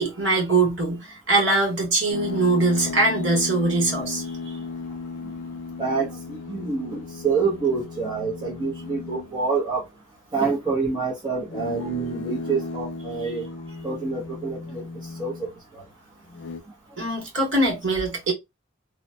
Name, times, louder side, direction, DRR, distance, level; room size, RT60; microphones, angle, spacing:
voice 1, 0.0-4.6 17.0-18.3, right 2 dB, 60° right, 1.9 m, -22 dB
sound 1, 2.1-9.4 11.4-15.6 16.3-16.6, left 4 dB, 60° left, 0.5 m, -35 dB
voice 2, 5.8-9.8 10.3-13.4 13.8-14.8 15.2-15.5 15.7-15.8, right 4 dB, 20° right, 0.7 m, -27 dB
3.0 x 2.1 x 2.5 m
head